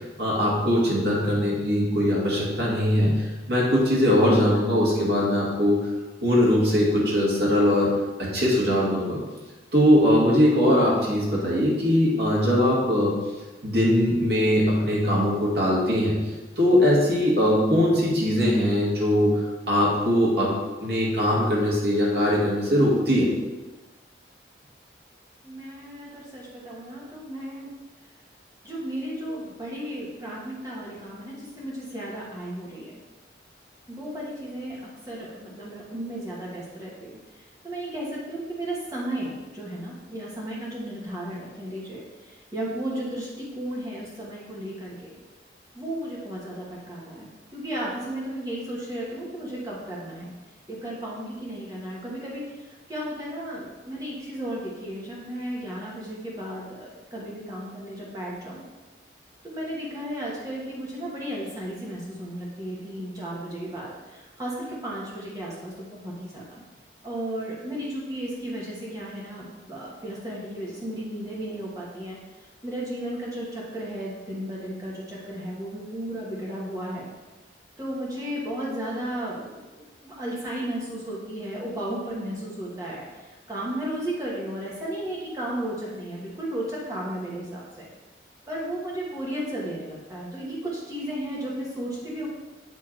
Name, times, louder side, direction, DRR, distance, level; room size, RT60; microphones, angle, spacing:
voice 1, 0.2-5.8 6.2-7.9 8.2-9.2 9.7-13.2 13.6-16.2 16.6-20.5 20.8-23.3, equal, 70° right, -5 dB, 2.0 m, -21 dB
voice 2, 25.4-27.7 28.6-32.9 33.9-34.8 35.1-45.1 45.7-50.3 50.7-58.6 59.4-66.6 67.0-72.2 72.6-77.1 77.8-87.9 88.5-92.3, right 1 dB, 20° right, -5 dB, 1.5 m, -34 dB
8.0 x 3.5 x 4.4 m, 1.2 s
head